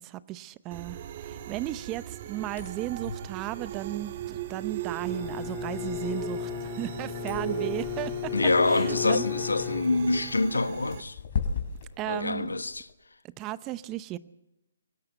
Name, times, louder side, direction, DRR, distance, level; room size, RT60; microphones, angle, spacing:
voice 1, 0.0-8.3 8.7-9.2 12.0-12.6 13.4-14.2, right 15 dB, 20° right, 0.8 m, -35 dB
sound 1, 0.7-11.0, right 11 dB, 45° right, 1.6 m, -38 dB
sound 2, 2.4-12.9, left 6 dB, 50° left, 4.4 m, -40 dB
Bowed string instrument, 5.0-10.4, left 15 dB, 25° left, 2.1 m, -35 dB
voice 2, 8.3-11.2 11.5-11.6 12.1-12.9, left 3 dB, 90° left, 1.2 m, -26 dB
24.0 x 18.0 x 8.1 m
hypercardioid pair, 145°, 0 cm